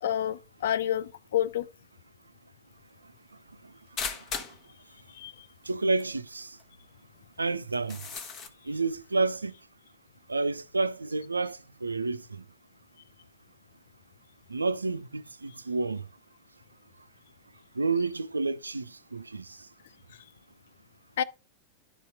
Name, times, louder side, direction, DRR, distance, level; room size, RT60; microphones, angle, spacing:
voice 1, 0.0-1.7 5.1-5.5 21.2-21.3, left 10 dB, 60° left, 0.4 m, -29 dB
sound 1, 4.0-4.6 5.7-5.8 6.0-6.1 6.6-6.7 7.7-8.5, left 5 dB, 30° left, 1.2 m, -36 dB
voice 2, 5.6-6.6 7.4-8.0 8.7-9.5 10.3-12.4 14.5-16.0 17.8-19.6, right 3 dB, 80° right, 0.4 m, -30 dB
11.0 x 4.1 x 4.7 m
figure-of-eight pair, 90°, 0 cm